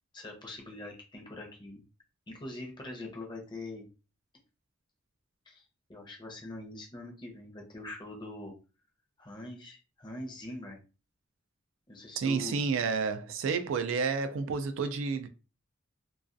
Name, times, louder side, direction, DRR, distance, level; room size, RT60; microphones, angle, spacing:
voice 1, 0.1-1.8 2.3-3.9 5.5-8.5 9.2-10.8 11.9-12.6, left 2 dB, 25° left, 0.6 m, -43 dB
voice 2, 12.2-15.3, right 5 dB, 80° right, 0.3 m, -30 dB
2.3 x 2.3 x 2.5 m
head